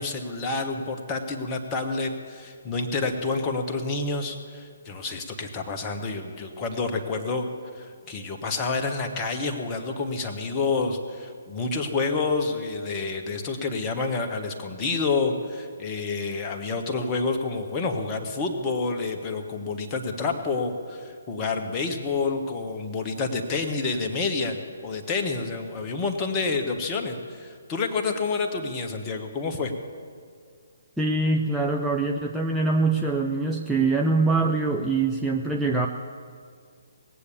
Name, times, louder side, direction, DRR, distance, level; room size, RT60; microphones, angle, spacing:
voice 1, 0.0-7.5 7.7-24.6 24.8-29.7, left 3 dB, 20° left, 3 dB, 1.2 m, -28 dB
voice 2, 31.0-35.9, right 3 dB, 5° right, 0 dB, 0.5 m, -24 dB
19.5 x 8.4 x 6.9 m, 2.1 s
figure-of-eight pair, 135°, 0 cm